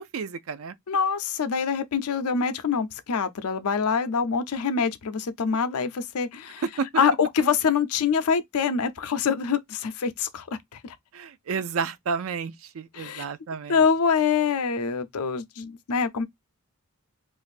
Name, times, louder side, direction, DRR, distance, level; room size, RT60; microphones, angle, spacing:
voice 1, 0.0-0.8 6.6-6.9 11.1-13.8, right 5 dB, 65° right, 0.4 m, -31 dB
voice 2, 0.9-6.6 7.0-11.0 12.9-13.2 13.7-16.2, left 6 dB, 85° left, 0.5 m, -25 dB
2.6 x 2.5 x 3.9 m
head